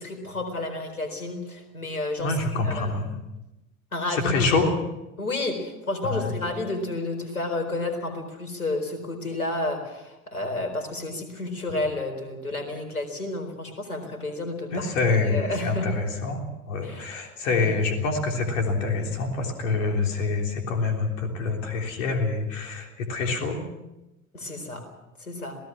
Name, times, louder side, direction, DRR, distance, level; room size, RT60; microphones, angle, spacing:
voice 1, 0.0-3.0 3.9-4.4 5.2-15.9 16.8-17.1 17.5-17.7 24.3-24.8 25.2-25.6, left 2 dB, 80° left, 5 dB, 4.3 m, -31 dB
voice 2, 2.2-3.2 4.1-4.7 6.1-6.3 14.7-23.7, left 3 dB, 60° left, 3 dB, 3.5 m, -26 dB
27.0 x 18.0 x 6.1 m, 0.96 s
figure-of-eight pair, 75°, 43 cm